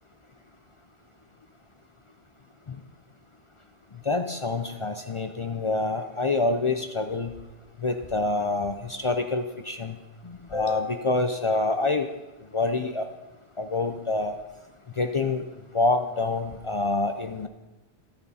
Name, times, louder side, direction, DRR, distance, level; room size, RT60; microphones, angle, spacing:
voice 1, 4.1-7.3 7.8-10.0 10.5-12.1 12.5-13.1 13.6-14.4 15.0-15.4 15.7-17.5, left 3 dB, 50° left, 7 dB, 0.4 m, -26 dB
16.0 x 6.0 x 4.2 m, 1.1 s
omnidirectional pair, 1.2 m